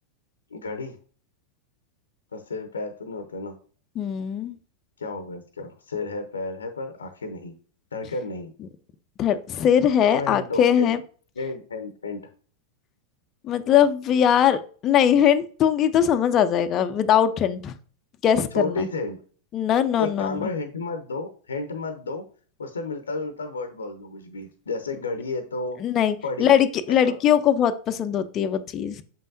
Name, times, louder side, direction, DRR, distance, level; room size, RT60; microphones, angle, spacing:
voice 1, 0.5-1.0 2.3-3.5 5.0-7.6 7.9-8.5 10.1-10.9 11.4-12.3 18.5-19.2 20.0-22.2 22.6-25.8 26.2-26.5 26.9-27.2, left 3 dB, 70° left, 9 dB, 0.7 m, -32 dB
voice 2, 4.0-4.6 9.2-11.0 13.4-17.7 18.2-18.9 19.5-20.5 25.8-29.0, left 9 dB, 30° left, 9 dB, 0.5 m, -21 dB
6.9 x 5.4 x 2.5 m, 0.42 s
figure-of-eight pair, 90°, 0 cm